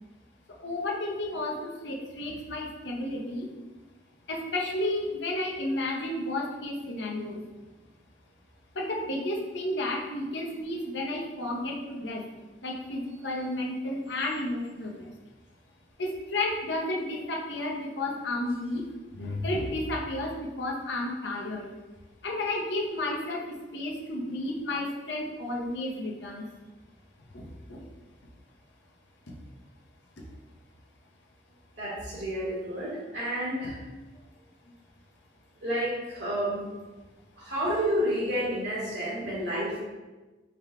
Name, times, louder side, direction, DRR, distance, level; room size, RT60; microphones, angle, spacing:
voice 1, 0.5-3.5 4.3-7.4 8.7-12.2 12.6-15.1 16.0-18.9 19.1-21.7 22.2-26.5 27.3-27.8 32.9-33.0, left 1 dB, 85° left, -1 dB, 0.8 m, -32 dB
voice 2, 31.8-33.8 35.6-36.7 37.4-39.8, equal, 80° right, -6 dB, 1.3 m, -30 dB
5.0 x 2.2 x 3.6 m, 1.2 s
head